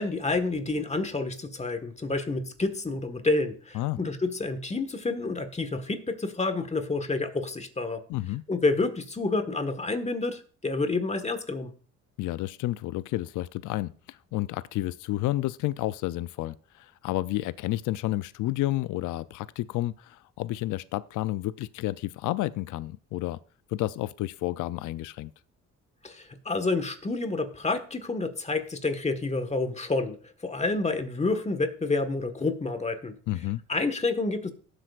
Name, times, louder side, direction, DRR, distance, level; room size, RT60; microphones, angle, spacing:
voice 1, 0.0-8.0 8.5-11.7 26.0-30.2 30.4-33.1 33.7-34.5, left 3 dB, 20° left, 1.4 m, -29 dB
voice 2, 8.1-8.4 12.2-23.4 23.7-25.3 33.3-33.6, left 16 dB, 80° left, 0.5 m, -31 dB
18.5 x 7.9 x 2.4 m
cardioid pair, 90°, 30 cm